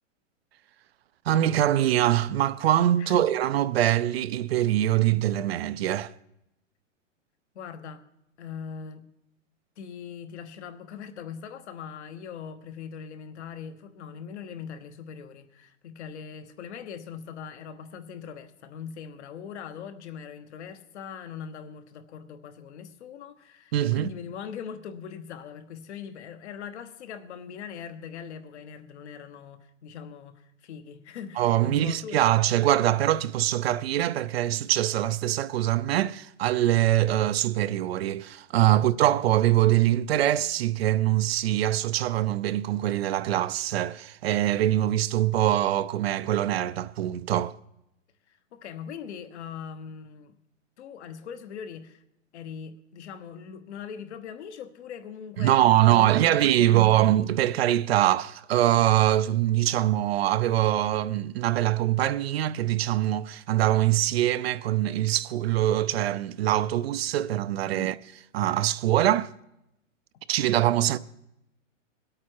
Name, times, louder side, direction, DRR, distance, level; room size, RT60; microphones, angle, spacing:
voice 1, 1.3-6.1 23.7-24.1 31.4-47.5 55.4-68.0 68.3-69.3 70.3-71.0, right 13 dB, 55° right, 0.5 m, -23 dB
voice 2, 7.5-8.0 8.4-9.1 9.8-32.2 38.7-38.9 48.3-50.4 50.8-52.0 52.3-56.9 67.7-67.9, left 7 dB, 60° left, 1.3 m, -41 dB
20.0 x 8.7 x 4.6 m
hypercardioid pair, 155°, 38 cm